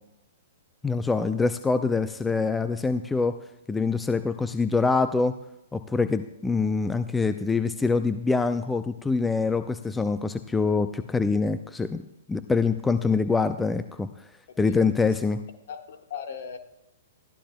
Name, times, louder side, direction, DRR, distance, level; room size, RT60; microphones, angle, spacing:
voice 1, 0.8-3.3 3.7-5.3 5.7-12.0 12.3-14.1 14.6-15.4, left 4 dB, 10° left, 11 dB, 0.5 m, -25 dB
voice 2, 14.5-15.1 15.7-16.6, left 7 dB, 55° left, 6 dB, 1.5 m, -38 dB
21.5 x 14.0 x 2.2 m, 0.83 s
figure-of-eight pair, 110°, 0 cm